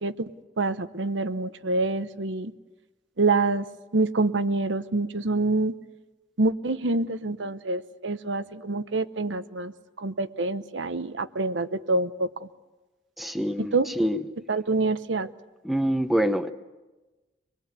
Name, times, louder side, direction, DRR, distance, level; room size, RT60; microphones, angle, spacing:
voice 1, 0.0-2.5 3.2-3.7 3.9-5.8 6.4-9.7 10.0-12.5 13.6-13.9 14.5-15.3, right 3 dB, 85° right, 12 dB, 1.0 m, -26 dB
voice 2, 13.2-14.2 15.6-16.5, equal, ahead, 8 dB, 0.8 m, -25 dB
25.5 x 21.0 x 8.3 m, 1.1 s
head